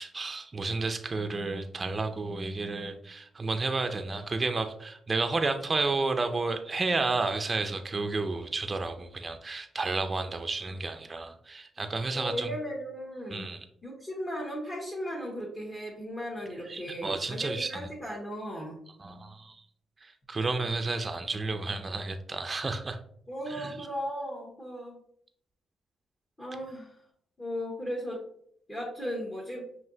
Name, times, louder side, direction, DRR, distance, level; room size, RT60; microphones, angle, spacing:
voice 1, 0.0-12.5 13.3-13.6 16.6-17.9 19.0-19.6 20.0-23.0 23.5-23.9, right 3 dB, 30° right, 7 dB, 0.4 m, -31 dB
voice 2, 12.1-13.5 13.8-18.8 23.3-25.0 26.4-26.9 27.4-28.2 28.7-29.7, equal, 25° left, -6 dB, 1.3 m, -36 dB
5.4 x 2.8 x 2.7 m, 0.66 s
cardioid pair, 85°, 0 cm